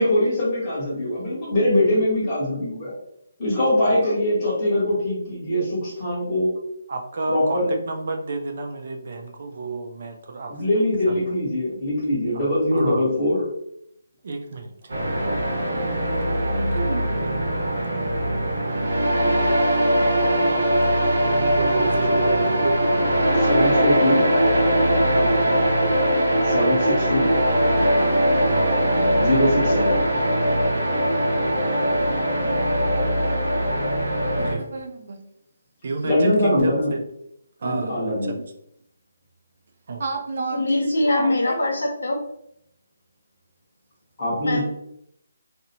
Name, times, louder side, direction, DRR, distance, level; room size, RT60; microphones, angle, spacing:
voice 1, 0.0-2.9 3.4-6.5 7.3-7.7 10.5-13.4 23.4-24.2 26.4-27.3 29.2-30.2 36.0-36.9 37.6-38.4 44.2-44.6, left 1 dB, 20° left, -8 dB, 1.1 m, -22 dB
voice 2, 6.9-10.5 11.1-11.2 12.3-12.4 12.7-13.1 14.2-14.9 16.7-17.0 21.5-22.8 25.1-25.4 28.4-28.7 34.3-35.2 35.8-37.0 37.6-38.4 39.9-41.6, right 3 dB, 50° right, 4 dB, 0.3 m, -30 dB
sound 1, 14.9-34.5, right 1 dB, 90° right, 0.8 m, -21 dB
voice 3, 40.5-42.2 44.4-44.6, left 1 dB, 80° left, 0 dB, 0.8 m, -22 dB
2.6 x 2.0 x 2.8 m, 0.76 s
hypercardioid pair, 170°, 0 cm